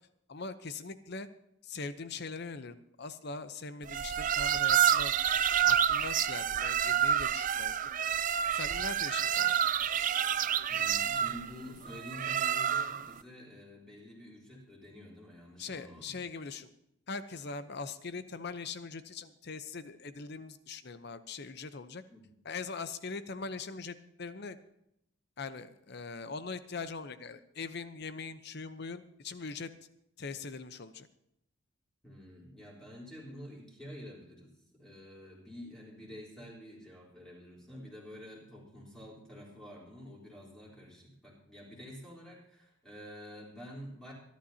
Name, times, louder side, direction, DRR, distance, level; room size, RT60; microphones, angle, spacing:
voice 1, 0.3-1.3 1.6-5.2 5.6-7.8 8.5-9.5 15.6-16.7 17.1-22.0 22.4-24.6 25.4-29.7 30.2-31.1, left 4 dB, 55° left, 12 dB, 0.8 m, -41 dB
sound 1, 3.9-13.1, right 9 dB, 40° right, 0.4 m, -28 dB
voice 2, 10.7-16.2 22.1-22.3 32.0-44.1, equal, 5° left, -4 dB, 3.8 m, -49 dB
25.5 x 11.5 x 2.9 m, 0.80 s
head